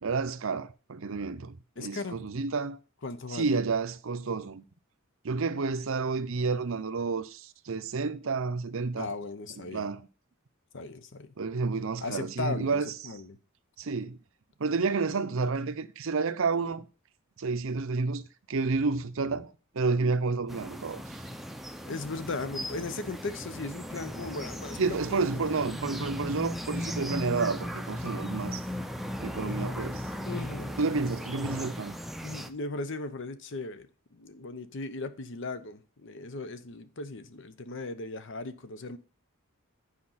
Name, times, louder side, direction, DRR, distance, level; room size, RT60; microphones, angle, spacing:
voice 1, 0.0-2.8 3.3-4.6 5.2-9.1 9.7-10.0 11.4-12.9 13.8-14.2 14.6-16.9 17.4-18.2 18.5-21.0 24.8-28.7 29.2-30.0 30.8-32.0, right 4 dB, 65° right, 0.6 m, -30 dB
voice 2, 1.8-2.2 3.0-3.6 9.0-9.9 10.7-11.3 12.0-13.4 21.8-25.5 29.4-29.8 30.2-30.8 32.2-39.0, left 3 dB, 60° left, 0.8 m, -37 dB
sound 1, 20.5-32.5, equal, ahead, 0.6 m, -37 dB
8.6 x 5.1 x 5.6 m
head